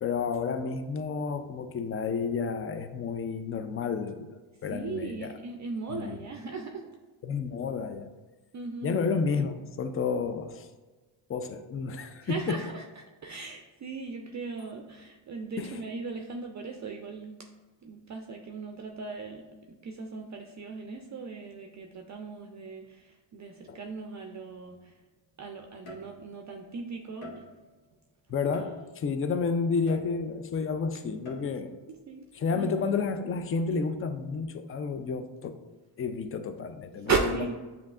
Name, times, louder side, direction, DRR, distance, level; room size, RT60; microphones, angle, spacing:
voice 1, 0.0-5.3 5.9-6.2 7.2-8.1 8.8-10.7 11.3-12.6 15.6-15.8 23.7-23.8 28.3-31.7 32.3-35.6 36.0-37.3, left 5 dB, 30° left, 9 dB, 0.4 m, -31 dB
voice 2, 4.7-6.9 8.5-9.0 12.2-17.4 17.8-25.0 25.4-27.5 31.9-32.3 32.5-32.7 37.0-37.5, right 4 dB, 35° right, 3 dB, 0.5 m, -37 dB
sound 1, 24.6-24.9 25.9-26.5 27.2-27.8 28.5-29.2 29.9-30.6 31.3-31.8, left 1 dB, 75° left, 1.3 m, -46 dB
7.1 x 2.8 x 2.4 m, 1.3 s
cardioid pair, 70°, 49 cm